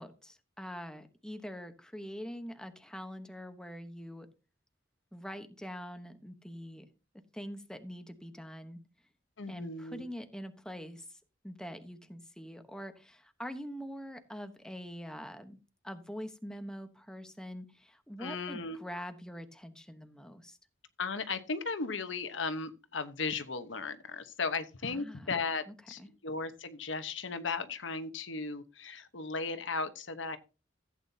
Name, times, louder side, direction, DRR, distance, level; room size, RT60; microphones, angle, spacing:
voice 1, 0.0-4.3 5.1-6.9 7.3-8.8 9.5-11.2 11.4-15.6 15.8-20.6 24.8-25.3 25.7-25.8 26.0-26.1, equal, 5° left, 1.0 m, -44 dB
voice 2, 9.4-10.1 18.2-18.8 21.0-30.4, left 4 dB, 85° left, 1.1 m, -36 dB
15.0 x 8.8 x 2.8 m
head